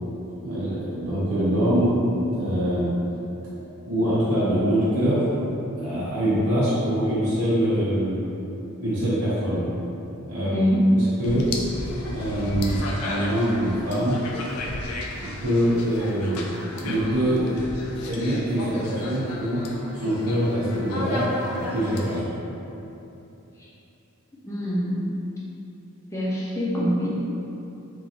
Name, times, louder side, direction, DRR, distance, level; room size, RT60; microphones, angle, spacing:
voice 1, 0.4-2.9 3.9-5.4 5.8-8.2 8.8-9.7 10.2-10.6 10.9-11.5 12.1-14.2 15.2-16.4 16.8-17.7 18.0-19.6 19.9-21.2 21.6-22.3, equal, 75° right, -10 dB, 0.6 m, -24 dB
voice 2, 10.5-10.9 23.6-23.7 24.4-25.0 26.1-27.1, equal, 15° left, -7 dB, 0.4 m, -24 dB
sound 1, 11.2-22.2, left 2 dB, 80° left, 0.4 m, -34 dB
3.0 x 2.4 x 2.6 m, 2.9 s
head